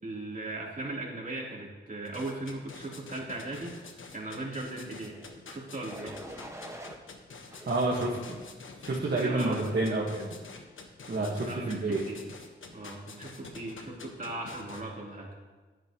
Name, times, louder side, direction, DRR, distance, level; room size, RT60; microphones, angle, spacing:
voice 1, 0.0-3.8 4.1-5.2 5.5-6.1 8.9-9.8 11.0-12.3 12.7-15.3, right 2 dB, 40° right, -4 dB, 3.4 m, -38 dB
sound 1, 2.1-14.8, left 4 dB, 75° left, 1.3 m, -47 dB
sound 2, 5.0-5.3 5.9-7.0 7.5-8.5 9.1-9.5, right 1 dB, 15° right, 1.4 m, -46 dB
voice 2, 7.7-8.4 8.8-10.4 11.1-12.0, right 2 dB, 55° right, -3 dB, 1.6 m, -29 dB
10.5 x 9.4 x 3.0 m, 1.3 s
cardioid pair, 55°, 21 cm